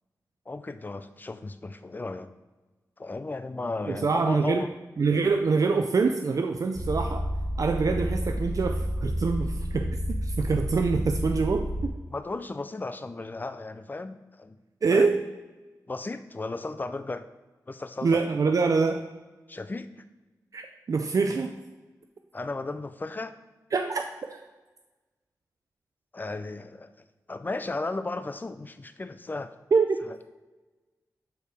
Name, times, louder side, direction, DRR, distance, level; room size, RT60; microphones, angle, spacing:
voice 1, 0.5-2.3 3.0-4.7 12.1-14.6 14.9-15.2 15.9-17.3 17.7-18.2 19.5-19.9 22.3-23.3 26.1-26.9 27.3-29.5 30.1-30.2, left 3 dB, 30° left, 10 dB, 0.5 m, -35 dB
voice 2, 3.9-4.6 5.0-7.2 7.6-10.0 10.2-11.9 14.8-15.2 18.0-19.1 20.5-21.5 23.7-24.4 29.7-29.9, right 4 dB, 55° right, 5 dB, 0.5 m, -25 dB
sound 1, 6.7-11.9, equal, 5° right, 0.9 m, -30 dB
12.0 x 4.7 x 3.3 m, 1.2 s
wide cardioid pair, 105°, 7 cm